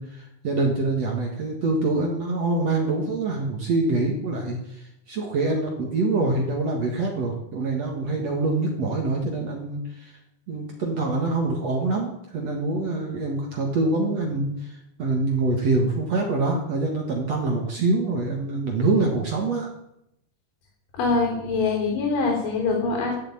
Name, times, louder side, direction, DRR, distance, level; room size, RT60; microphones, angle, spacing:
voice 1, 0.0-10.1 10.5-19.7, right 3 dB, 55° right, 1 dB, 1.9 m, -25 dB
voice 2, 21.0-23.2, left 4 dB, 65° left, -1 dB, 5.6 m, -24 dB
13.5 x 7.6 x 8.7 m, 0.80 s
omnidirectional pair, 5.4 m